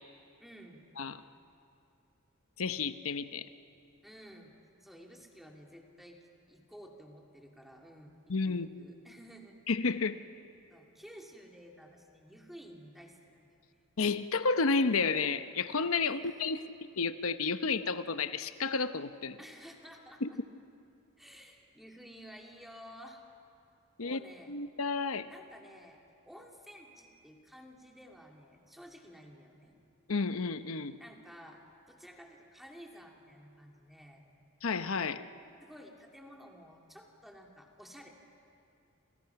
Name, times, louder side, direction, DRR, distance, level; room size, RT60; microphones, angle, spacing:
voice 1, 0.4-0.9 4.0-6.2 6.5-9.6 10.7-13.4 16.0-16.7 19.4-20.4 21.2-23.2 24.0-24.6 25.3-26.0 26.2-29.7 31.0-34.2 35.6-38.1, equal, ahead, 0 dB, 2.5 m, -53 dB
voice 2, 2.6-3.4 8.3-8.7 9.7-10.2 14.0-16.6 17.0-19.4 20.2-20.3 24.0-24.2 24.5-25.3 30.1-31.0 34.6-35.2, left 4 dB, 80° left, 11 dB, 0.8 m, -31 dB
30.0 x 27.5 x 5.9 m, 2.6 s
head